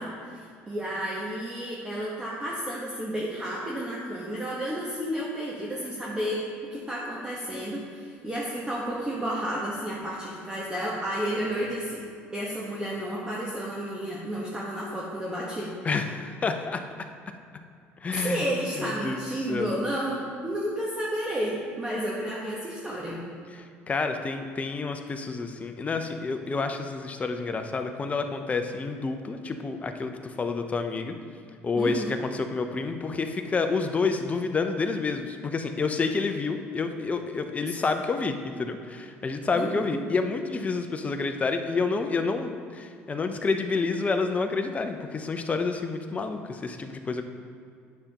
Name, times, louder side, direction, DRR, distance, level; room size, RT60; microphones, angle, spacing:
voice 1, 0.0-12.0 12.3-15.7 18.1-23.2 31.8-32.1 39.5-40.0, right 1 dB, 15° right, -5 dB, 1.2 m, -31 dB
voice 2, 15.8-16.8 18.0-18.4 18.8-19.7 23.6-31.1 31.6-47.2, left 4 dB, 25° left, 6 dB, 0.7 m, -29 dB
9.5 x 6.7 x 2.9 m, 2.3 s
supercardioid pair, 95°, 5 cm